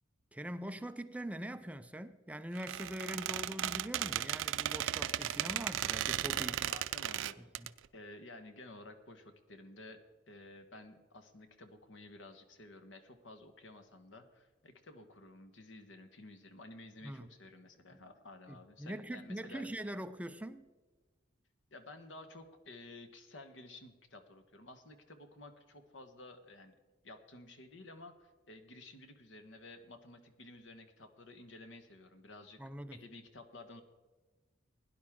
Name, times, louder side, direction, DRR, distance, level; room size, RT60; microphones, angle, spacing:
voice 1, 0.3-6.8 7.4-7.7 17.0-17.3 18.5-20.7 32.6-33.0, right 1 dB, 5° right, 0.4 m, -43 dB
Squeak, 2.5-7.7, right 11 dB, 85° right, 0.4 m, -36 dB
voice 2, 6.3-7.4 7.9-19.6 21.7-26.7 27.0-32.6 32.9-33.8, left 2 dB, 80° left, 1.3 m, -53 dB
17.0 x 10.5 x 3.6 m
head